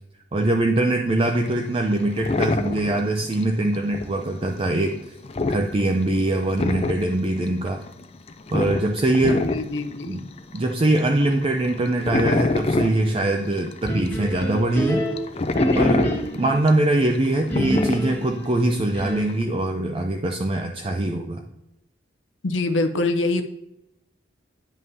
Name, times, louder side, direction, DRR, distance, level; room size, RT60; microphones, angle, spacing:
voice 1, 0.3-5.0 5.5-7.8 8.5-9.4 10.1-10.2 10.5-15.0 15.8-21.4, right 1 dB, 30° right, 3 dB, 0.4 m, -22 dB
sound 1, 1.2-14.1 14.6-19.4, left 2 dB, 30° left, 0.4 m, -27 dB
voice 2, 9.2-10.2 22.4-23.4, left 2 dB, 80° left, 6 dB, 0.6 m, -25 dB
sound 2, 13.8-16.6 17.5-19.5, equal, 10° left, 1.8 m, -28 dB
9.2 x 5.4 x 2.7 m, 0.89 s
head